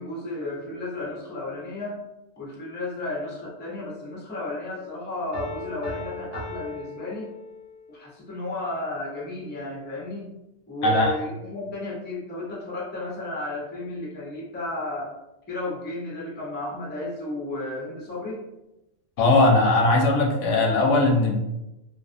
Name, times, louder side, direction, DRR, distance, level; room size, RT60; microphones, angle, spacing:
voice 1, 0.0-2.0 2.4-7.3 7.9-10.3 10.7-15.1 15.5-18.4, left 2 dB, 15° left, -4 dB, 0.4 m, -33 dB
Piano, 5.3-7.9, left 1 dB, 80° right, 1.0 m, -37 dB
voice 2, 10.8-11.1 19.2-21.4, left 2 dB, 85° left, 0 dB, 0.9 m, -19 dB
2.4 x 2.4 x 2.4 m, 0.94 s
omnidirectional pair, 1.2 m